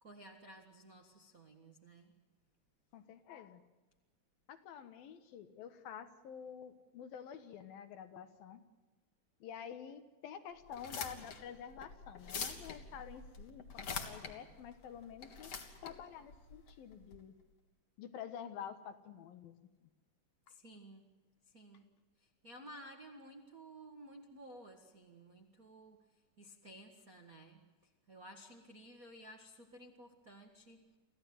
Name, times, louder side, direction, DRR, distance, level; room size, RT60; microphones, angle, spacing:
voice 1, 0.0-2.1 20.5-21.1 21.4-31.0, right 1 dB, 80° right, 3 dB, 0.7 m, -55 dB
voice 2, 2.9-3.6 4.5-8.6 9.4-15.5 15.8-17.3 18.0-19.5 19.8-19.9, left 8 dB, 70° left, 9 dB, 2.9 m, -49 dB
sound 1, 10.7-17.2, left 5 dB, 45° left, 2.6 m, -45 dB
27.5 x 15.5 x 9.4 m, 1.2 s
omnidirectional pair, 4.7 m